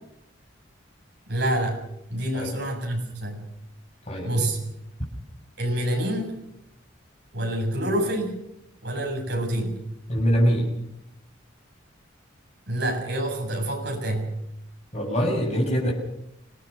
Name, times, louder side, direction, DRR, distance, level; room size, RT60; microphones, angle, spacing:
voice 1, 1.3-1.8 2.1-3.4 4.2-4.6 5.6-6.3 7.3-8.4 8.8-9.8 12.7-14.3, right 1 dB, 60° right, 2 dB, 7.3 m, -27 dB
voice 2, 4.1-4.4 10.1-10.7 14.9-15.9, equal, 35° left, -1 dB, 6.6 m, -23 dB
25.5 x 18.0 x 6.7 m, 0.81 s
head